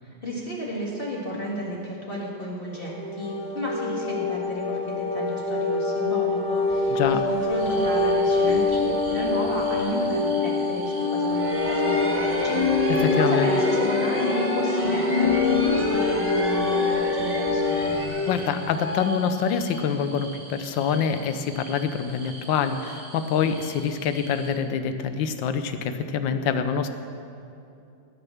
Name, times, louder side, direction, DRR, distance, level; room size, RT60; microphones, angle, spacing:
voice 1, 0.0-17.9, equal, 30° left, -4 dB, 2.0 m, -33 dB
sound 1, 2.7-18.1, left 3 dB, 70° left, 2.3 m, -24 dB
voice 2, 6.9-7.2 12.9-13.5 18.3-26.9, left 7 dB, 90° left, 9 dB, 1.5 m, -25 dB
sound 2, 7.6-24.5, right 2 dB, 70° right, 2.8 m, -45 dB
sound 3, 11.3-20.0, equal, 10° right, 0.8 m, -31 dB
18.5 x 6.7 x 7.1 m, 2.6 s
omnidirectional pair, 2.0 m